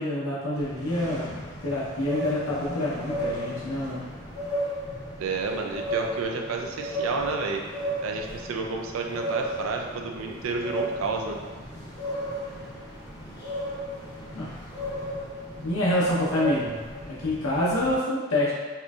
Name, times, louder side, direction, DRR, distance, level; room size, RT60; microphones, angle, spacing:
voice 1, 0.0-4.0 14.3-14.5 15.6-18.5, left 1 dB, 75° left, -6 dB, 0.7 m, -27 dB
sound 1, 0.5-18.0, equal, 15° left, 0.6 m, -34 dB
voice 2, 5.2-7.6 8.0-11.4, right 4 dB, 70° right, 2 dB, 0.4 m, -30 dB
4.2 x 2.6 x 2.3 m, 1.5 s
head